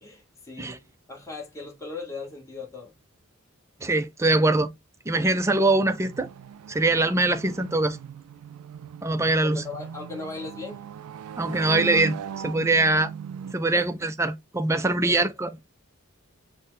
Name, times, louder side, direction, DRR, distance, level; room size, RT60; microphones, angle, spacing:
voice 1, 0.0-2.9 5.3-5.6 9.4-10.8 13.7-13.9 14.7-15.3, left 4 dB, 15° left, 1.2 m, -39 dB
voice 2, 3.8-4.7 5.1-6.3 6.7-8.0 9.0-9.6 11.4-13.1 13.5-15.5, right 2 dB, 15° right, 0.4 m, -23 dB
sound 1, 5.4-13.5, right 8 dB, 85° right, 0.3 m, -39 dB
5.6 x 2.1 x 3.1 m
head